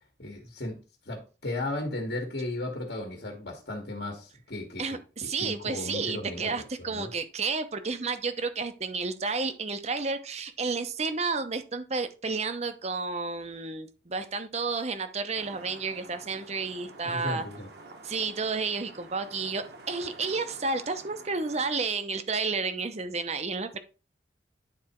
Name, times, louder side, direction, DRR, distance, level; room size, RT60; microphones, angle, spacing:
voice 1, 0.2-0.8 1.0-7.1 17.0-17.7, left 2 dB, 60° left, 1.7 m, -36 dB
voice 2, 4.8-17.5 18.0-23.8, right 4 dB, 35° right, 0.8 m, -31 dB
sound 1, 15.4-21.7, right 2 dB, 60° right, 1.4 m, -48 dB
9.8 x 4.3 x 4.3 m
head